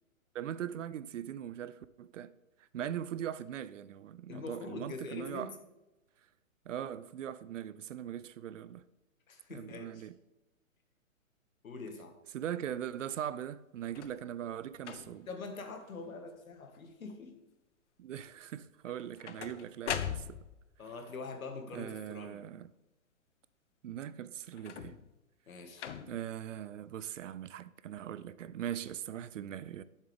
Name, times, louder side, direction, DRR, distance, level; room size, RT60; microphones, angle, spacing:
voice 1, 0.3-2.3 2.7-5.5 6.7-8.9 9.5-10.1 12.3-15.3 18.0-20.4 21.7-22.7 23.8-25.0 26.1-29.8, right 10 dB, 65° right, 0.6 m, -40 dB
voice 2, 4.3-5.6 9.3-10.1 11.6-12.2 15.3-17.3 20.8-22.4 25.5-25.9, left 4 dB, 75° left, 1.7 m, -44 dB
sound 1, 13.8-14.2 14.8-15.3 15.9-16.3 16.6-17.1 18.8-20.7 24.5-25.2 25.8-26.3 27.2-27.3, left 9 dB, 60° left, 0.8 m, -41 dB
10.5 x 7.4 x 3.4 m
hypercardioid pair, 135°, 41 cm